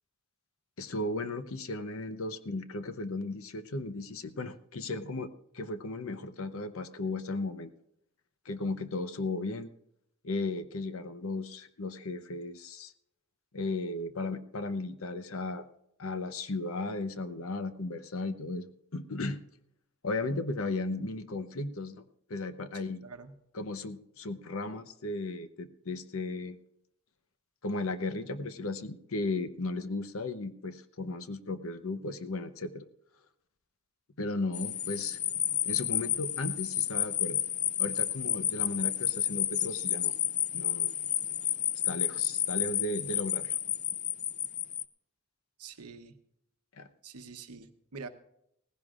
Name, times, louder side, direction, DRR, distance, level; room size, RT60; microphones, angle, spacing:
voice 1, 0.8-7.7 8.5-9.7 10.2-12.9 13.5-15.7 16.0-19.4 20.0-22.0 22.3-23.0 23.5-26.6 27.6-32.9 34.2-35.2 35.6-37.4 37.8-40.1 40.5-40.9 41.9-43.5 46.8-46.9, left 2 dB, 65° left, 10 dB, 0.8 m, -35 dB
voice 2, 23.0-23.4 45.6-46.2 47.0-48.1, right 5 dB, 85° right, 7 dB, 1.0 m, -45 dB
sound 1, 34.5-44.8, left 12 dB, 35° left, 0.4 m, -31 dB
18.5 x 15.5 x 2.5 m, 0.78 s
head